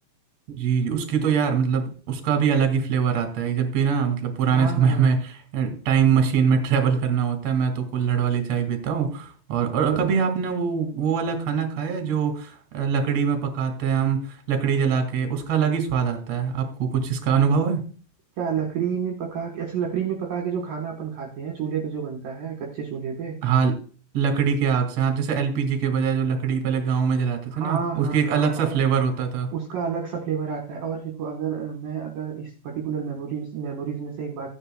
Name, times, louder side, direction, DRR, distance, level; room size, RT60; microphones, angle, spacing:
voice 1, 0.6-17.8 23.4-23.7 24.1-29.5, right 6 dB, 45° right, 6 dB, 2.6 m, -23 dB
voice 2, 4.5-5.1 9.8-10.2 18.4-23.4 27.5-28.8 29.5-34.5, right 7 dB, 65° right, 1 dB, 2.6 m, -30 dB
15.5 x 9.8 x 2.3 m, 0.40 s
omnidirectional pair, 5.1 m